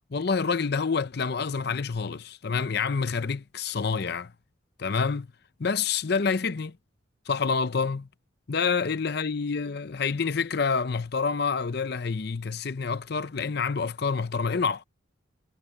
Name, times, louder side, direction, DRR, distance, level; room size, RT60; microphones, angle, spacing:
voice 1, 0.1-4.3 4.8-5.3 5.6-6.8 7.3-8.1 8.5-14.8, left 5 dB, 55° left, 0.6 m, -27 dB
head